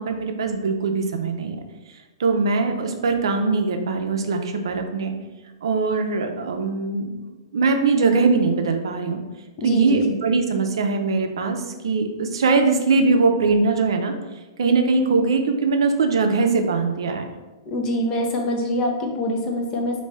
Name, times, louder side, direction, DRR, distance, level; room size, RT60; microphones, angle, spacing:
voice 1, 0.0-1.6 2.2-5.1 5.6-7.1 7.5-9.2 9.6-14.1 14.6-17.3, right 4 dB, 80° right, 5 dB, 0.4 m, -21 dB
voice 2, 9.6-10.0 17.7-20.0, equal, 30° left, 2 dB, 0.6 m, -24 dB
3.1 x 2.6 x 3.3 m, 1.2 s
hypercardioid pair, 135°, 3 cm